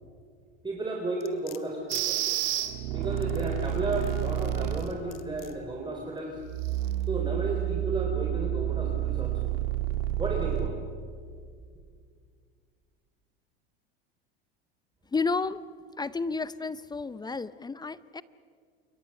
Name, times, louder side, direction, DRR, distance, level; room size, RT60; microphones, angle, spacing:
voice 1, 0.6-2.4 2.9-6.4 7.1-9.5 10.2-10.8, right 2 dB, 15° right, 1 dB, 3.8 m, -33 dB
sound 1, 1.2-2.1 3.0-4.2 4.8-5.6 6.2-6.3, left 12 dB, 45° left, 2.1 m, -48 dB
sound 2, 1.9-5.0 6.4-10.7, right 12 dB, 75° right, 2.0 m, -29 dB
voice 2, 15.1-15.6 16.0-18.2, left 4 dB, 15° left, 17 dB, 0.6 m, -31 dB
28.0 x 22.5 x 6.6 m, 2.1 s
hypercardioid pair, 90°, 30 cm